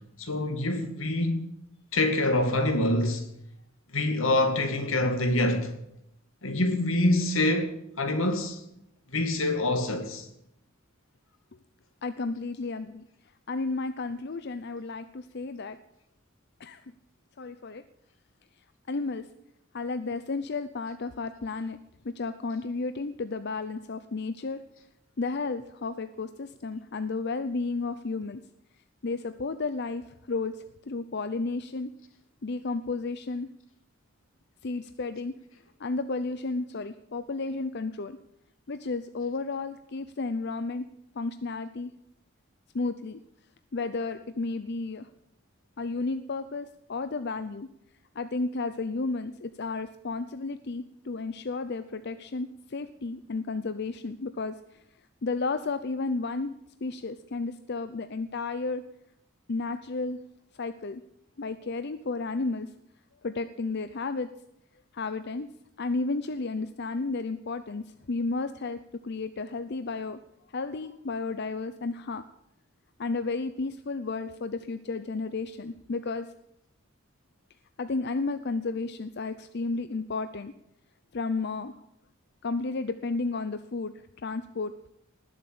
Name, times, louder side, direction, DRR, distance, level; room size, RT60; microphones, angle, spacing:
voice 1, 0.2-1.5 1.9-3.3 3.9-5.7 6.4-8.6 9.1-10.3, left 1 dB, 85° left, 2.3 m, -26 dB
voice 2, 12.0-13.0 13.5-15.8 16.6-16.9 17.4-17.8 18.9-19.3 19.7-21.8 22.0-24.6 25.2-28.4 29.0-31.9 32.4-33.5 34.6-35.3 35.8-38.2 38.7-40.8 41.1-41.9 42.7-43.2 43.7-45.1 45.8-47.7 48.1-54.8 55.2-56.5 56.8-58.8 59.5-60.2 60.6-61.0 61.4-62.7 63.2-64.3 64.9-65.5 65.8-70.2 70.5-72.2 73.0-76.3 77.8-80.5 81.1-81.8 82.4-84.9, left 3 dB, 55° left, 0.6 m, -32 dB
19.5 x 7.4 x 8.7 m
head